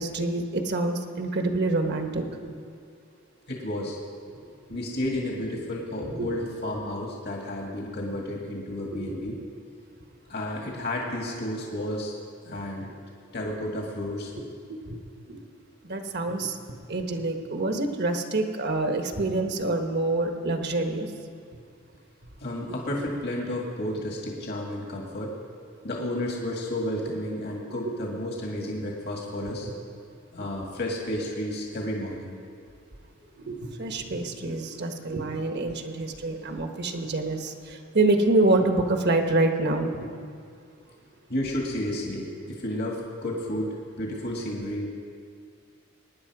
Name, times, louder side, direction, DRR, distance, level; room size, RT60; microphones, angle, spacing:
voice 1, 0.0-2.2 2.5-2.6 4.4-4.5 6.1-6.3 9.0-9.4 14.4-14.5 14.7-15.0 15.3-15.4 15.8-16.6 16.9-21.1 33.4-40.1, right 2 dB, 55° right, 5 dB, 1.3 m, -26 dB
voice 2, 3.5-4.0 4.7-9.4 10.3-12.1 12.4-12.9 13.3-14.3 22.4-25.3 25.8-29.7 30.3-32.3 41.3-44.9, left 1 dB, 55° left, -1 dB, 2.1 m, -32 dB
23.5 x 10.0 x 4.9 m, 2.3 s
head